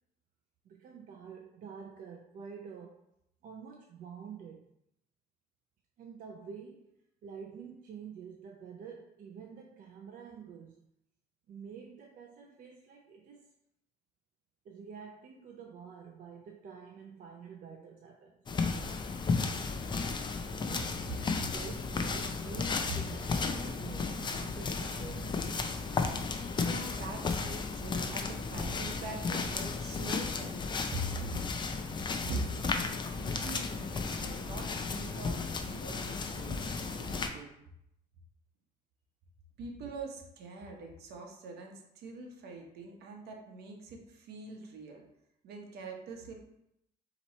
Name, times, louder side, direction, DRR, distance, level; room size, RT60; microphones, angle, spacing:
voice 1, 0.6-3.0 3.4-4.6 6.0-6.9 7.2-10.8 11.5-13.5 14.6-18.4 20.6-25.6, right 6 dB, 55° right, 1 dB, 0.5 m, -48 dB
sound 1, 18.5-37.3, left 4 dB, 25° left, 0.5 m, -34 dB
voice 2, 26.6-31.5 32.2-32.4 33.1-37.5 39.6-45.0 45.4-46.3, right 2 dB, 70° right, 2 dB, 1.0 m, -43 dB
4.1 x 3.0 x 4.2 m, 0.79 s
cardioid pair, 110°, 17 cm